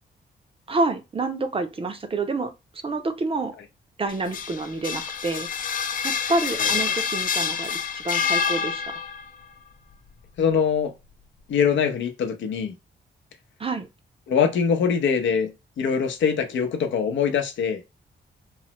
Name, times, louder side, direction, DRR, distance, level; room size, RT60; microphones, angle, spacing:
voice 1, 0.7-2.5 2.8-3.6 4.0-5.5 6.0-9.0 13.6-13.9, right 3 dB, 30° right, 0.5 m, -28 dB
sound 1, 4.1-9.3, left 6 dB, 45° left, 0.4 m, -27 dB
voice 2, 10.4-10.9 11.5-12.7 14.3-15.5 15.8-17.8, left 7 dB, 85° left, 0.6 m, -23 dB
3.1 x 2.0 x 2.9 m
cardioid pair, 90°, 19 cm